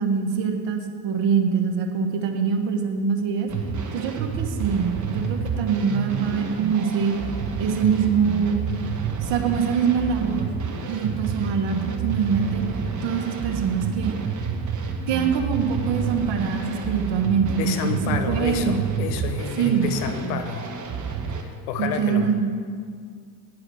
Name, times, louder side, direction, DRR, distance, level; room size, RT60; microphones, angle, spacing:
voice 1, 0.0-3.5 3.9-7.1 7.6-8.5 9.2-10.5 10.9-12.6 13.0-14.1 15.1-18.8 19.6-19.9 21.8-22.5, right 6 dB, 60° right, 5 dB, 1.3 m, -24 dB
sound 1, 3.5-21.4, right 5 dB, 35° right, 1.2 m, -29 dB
voice 2, 17.5-20.7 21.7-22.3, left 7 dB, 85° left, 9 dB, 0.8 m, -29 dB
9.7 x 4.9 x 7.6 m, 2.1 s
hypercardioid pair, 65°, 49 cm